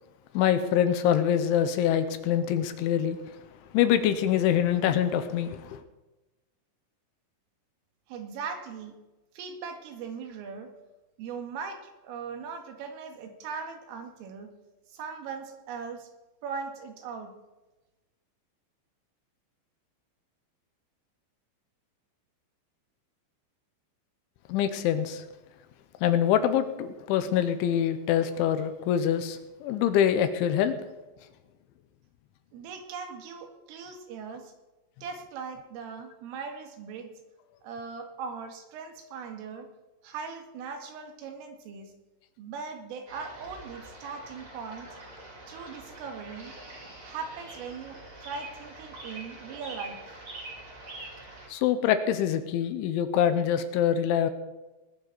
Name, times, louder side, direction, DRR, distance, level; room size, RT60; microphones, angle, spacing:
voice 1, 0.3-3.2 3.7-5.8 24.5-25.2 26.0-30.7 51.5-54.3, left 10 dB, 80° left, 10 dB, 3.1 m, -25 dB
voice 2, 8.1-9.0 9.3-10.7 11.2-14.5 14.9-16.1 16.4-17.3 32.5-34.5 35.0-37.1 37.6-39.7 40.0-41.9 42.4-44.9 45.5-46.5 47.0-50.2, right 5 dB, 85° right, 4 dB, 4.4 m, -39 dB
sound 1, 43.1-51.5, right 2 dB, 30° right, 4.6 m, -45 dB
20.0 x 12.0 x 4.1 m, 1.1 s
omnidirectional pair, 5.7 m